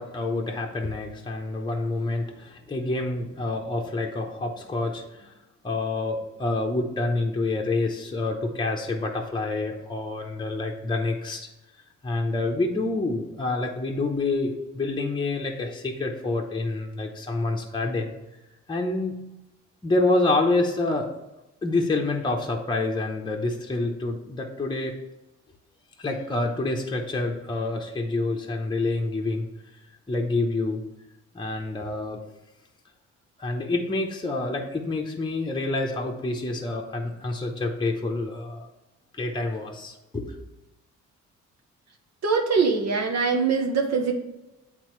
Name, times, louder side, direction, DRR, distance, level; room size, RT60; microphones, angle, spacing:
voice 1, 0.0-5.3 5.6-11.5 12.0-18.1 18.7-19.1 19.8-21.1 21.6-24.9 26.0-29.5 30.1-30.8 31.3-32.2 33.4-38.7 39.1-40.4, left 2 dB, 15° left, 1 dB, 0.8 m, -27 dB
voice 2, 42.2-44.1, right 5 dB, 60° right, 1 dB, 0.9 m, -23 dB
8.5 x 3.7 x 3.1 m, 0.98 s
cardioid pair, 90°, 30 cm